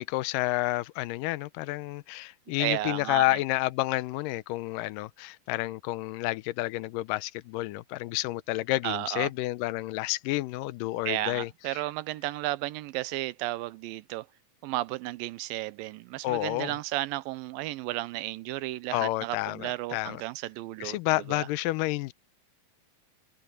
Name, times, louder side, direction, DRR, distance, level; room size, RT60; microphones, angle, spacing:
voice 1, 0.0-11.8 16.2-16.8 18.9-20.2 20.8-22.1, left 18 dB, 85° left, 2.2 m, -30 dB
voice 2, 2.6-3.4 8.8-9.3 11.1-14.3 14.6-21.0 21.3-21.5, right 17 dB, 85° right, 2.4 m, -33 dB
omnidirectional pair, 3.9 m